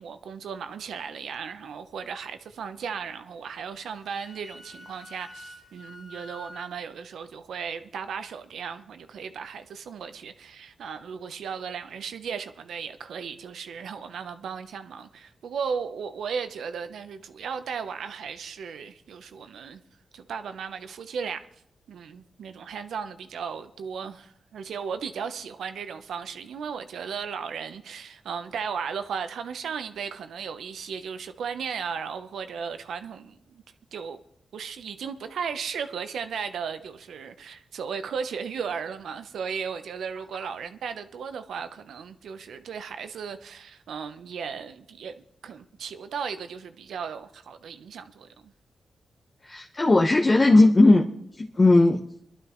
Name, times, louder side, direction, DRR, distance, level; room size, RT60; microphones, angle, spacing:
voice 1, 0.0-19.8 20.1-21.4 21.9-33.6 33.9-34.2 34.5-45.2 45.4-48.5, right 6 dB, 85° right, 0.8 m, -35 dB
Wind instrument woodwind instrument, 3.8-6.7, left 1 dB, 70° left, 2.9 m, -46 dB
voice 2, 49.4-51.0 51.4-52.0, left 2 dB, 35° left, 1.0 m, -17 dB
21.5 x 12.0 x 3.1 m
cardioid pair, 60°, 0 cm